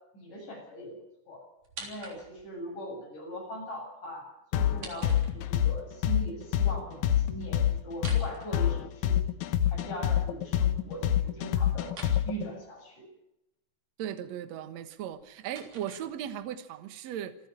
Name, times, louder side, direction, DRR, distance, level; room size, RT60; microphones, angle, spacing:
voice 1, 0.1-1.0 1.3-1.4 1.8-4.2 4.5-9.3 9.7-11.9 12.3-13.1, equal, 45° left, 9.2 m, -40 dB
sound 1, 1.6-2.6 4.6-5.8 7.9-9.2 11.9-12.2 14.9-16.5, right 3 dB, 50° right, 4.8 m, -47 dB
sound 2, 4.5-12.5, left 10 dB, 85° left, 1.6 m, -26 dB
voice 2, 14.0-17.4, right 10 dB, 70° right, 1.6 m, -37 dB
28.0 x 9.6 x 9.9 m
omnidirectional pair, 4.9 m